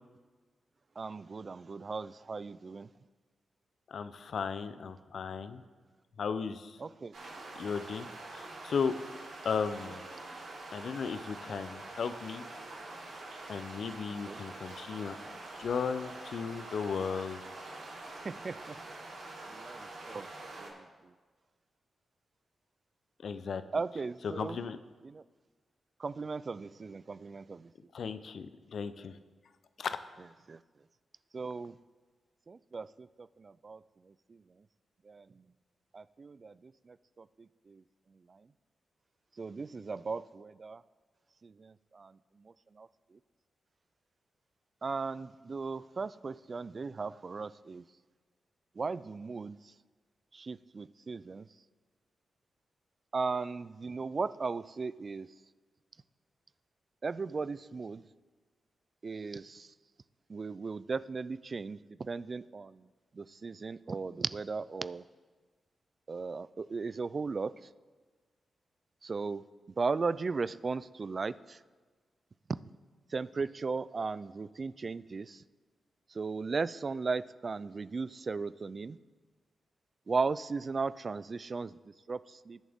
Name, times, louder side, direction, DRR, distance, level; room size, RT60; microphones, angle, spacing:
voice 1, 1.0-2.9 6.8-7.1 14.2-14.4 18.2-18.8 19.5-20.3 20.6-21.1 23.7-24.6 25.0-25.2 26.0-27.7 30.5-30.6 31.3-31.8 32.5-34.4 35.0-35.4 35.9-37.8 38.3-38.5 39.4-40.8 41.4-43.2 44.8-47.8 48.8-49.7 50.3-51.5 53.1-55.3 57.0-58.0 59.0-59.7 60.3-62.9 63.1-65.0 66.1-67.7 69.0-69.5 69.8-71.6 73.1-75.4 76.1-79.0 80.1-82.6, right 4 dB, 45° right, 17 dB, 0.4 m, -37 dB
voice 2, 3.9-5.6 6.2-6.8 7.6-8.9 9.4-10.0 10.7-12.4 13.5-15.2 15.6-17.4 23.2-23.6 24.2-24.8 27.9-29.2 29.8-30.0, left 6 dB, 70° left, 12 dB, 0.6 m, -35 dB
sound 1, 7.1-20.7, right 2 dB, 75° right, 4.4 m, -45 dB
21.0 x 7.2 x 3.6 m, 1.4 s
cardioid pair, 60°, 0 cm